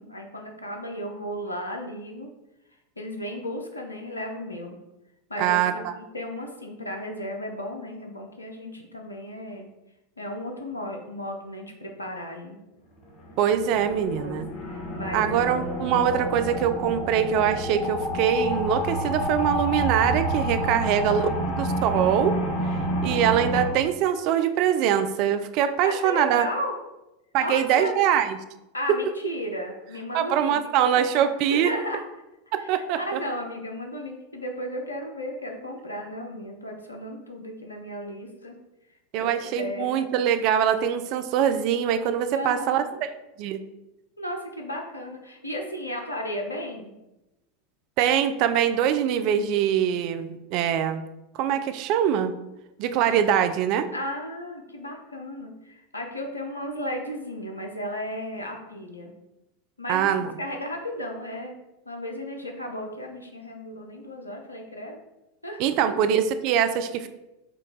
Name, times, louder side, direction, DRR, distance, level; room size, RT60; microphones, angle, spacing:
voice 1, 0.0-2.3 3.0-4.8 5.3-9.7 10.2-12.6 14.1-14.4 14.7-15.3 20.6-21.0 23.0-23.3 25.8-26.7 27.4-28.1 28.7-31.2 31.5-32.0 32.6-38.6 39.2-39.9 42.3-43.0 44.2-47.0 53.0-53.2 53.9-59.2 59.8-61.5 61.9-65.0 65.4-65.9, left 1 dB, 90° left, 2 dB, 0.5 m, -35 dB
voice 2, 5.4-5.9 13.4-14.4 15.1-22.4 22.7-26.5 27.3-28.4 28.9-29.0 30.1-31.7 32.5-33.2 39.1-43.1 43.4-43.6 48.0-51.0 51.3-52.4 52.8-53.9 59.9-60.3 65.6-67.1, right 9 dB, 50° right, 9 dB, 0.3 m, -23 dB
sound 1, 13.0-23.7, equal, 40° left, 0.9 m, -29 dB
4.5 x 2.3 x 3.8 m, 0.95 s
figure-of-eight pair, 85°, 0 cm